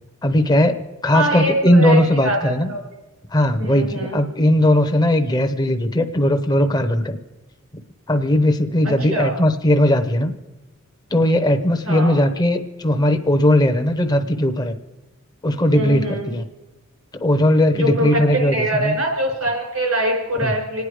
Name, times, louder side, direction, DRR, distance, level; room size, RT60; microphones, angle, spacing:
voice 1, 0.2-2.7 3.3-7.2 8.1-10.3 11.1-14.8 15.4-16.5 17.2-18.9 20.4-20.5, left 1 dB, 20° left, 6 dB, 0.9 m, -18 dB
voice 2, 1.1-2.4 2.7-2.8 3.6-4.2 8.8-9.3 11.8-12.1 15.7-16.3 17.7-20.8, right 1 dB, 90° right, 1 dB, 4.7 m, -23 dB
27.0 x 9.4 x 4.9 m, 1.1 s
head